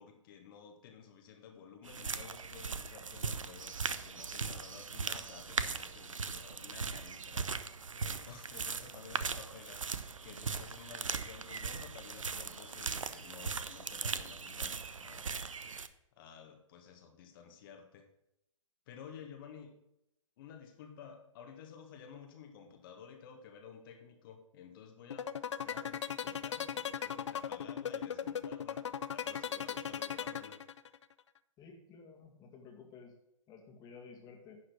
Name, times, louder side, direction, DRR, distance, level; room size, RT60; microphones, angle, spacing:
voice 1, 0.0-7.7 8.0-9.9 10.2-15.3 16.2-18.1 18.9-19.8 20.4-28.8 29.1-30.6, left 7 dB, 45° left, 4 dB, 1.7 m, -53 dB
sound 1, 1.9-15.9, right 5 dB, 80° right, 0.7 m, -39 dB
sound 2, 25.1-31.0, left 8 dB, 65° left, 0.6 m, -37 dB
voice 2, 31.6-33.1 33.5-34.6, left 5 dB, 25° left, 1 dB, 2.1 m, -53 dB
11.0 x 4.9 x 6.2 m, 0.82 s
figure-of-eight pair, 120°, 17 cm